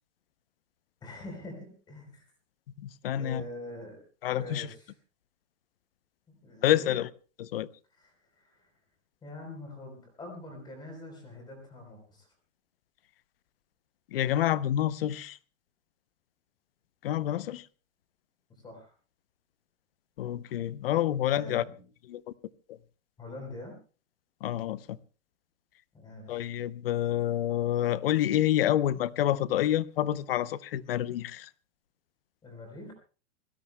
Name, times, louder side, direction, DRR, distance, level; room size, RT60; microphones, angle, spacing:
voice 1, 1.0-2.2 3.1-4.0 4.3-4.9 6.3-7.0 7.9-8.7 9.2-12.3 18.6-18.9 21.1-21.8 23.2-23.7 25.9-26.5 32.4-32.9, left 1 dB, 10° left, 3.9 m, -44 dB
voice 2, 2.8-3.5 4.2-4.7 6.6-7.1 7.4-7.7 14.1-15.4 17.0-17.7 20.2-21.6 22.1-22.3 24.4-25.0 26.3-31.5, left 12 dB, 50° left, 0.7 m, -28 dB
26.0 x 17.5 x 2.2 m
supercardioid pair, 175°, 38 cm